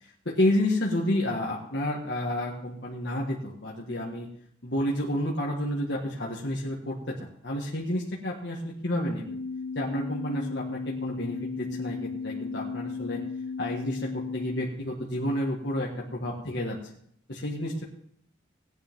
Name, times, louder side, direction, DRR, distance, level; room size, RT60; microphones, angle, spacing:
voice 1, 0.3-4.3 4.6-9.4 9.8-13.2 13.6-16.8 17.3-17.8, left 1 dB, 65° left, -3 dB, 1.8 m, -30 dB
sound 1, 9.2-14.7, left 4 dB, 85° left, 1.3 m, -35 dB
17.5 x 10.5 x 3.7 m, 0.65 s
head